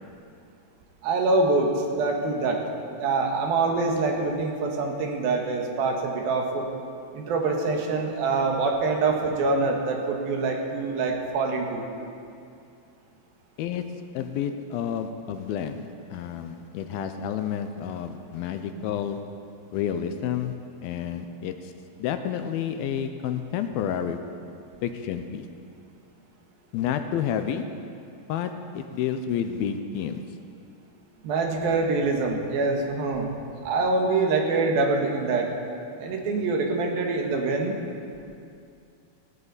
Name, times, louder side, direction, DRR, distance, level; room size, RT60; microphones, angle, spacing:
voice 1, 1.0-1.7 2.0-2.6 3.0-6.7 7.1-11.8 31.2-33.3 33.6-35.5 36.0-37.7, right 3 dB, 70° right, 2 dB, 3.2 m, -25 dB
voice 2, 13.6-19.3 19.7-20.6 20.8-21.7 22.0-24.2 24.8-25.5 26.7-27.8 28.3-30.3, left 8 dB, 80° left, 8 dB, 2.4 m, -30 dB
16.5 x 16.5 x 4.1 m, 2.5 s
omnidirectional pair, 4.5 m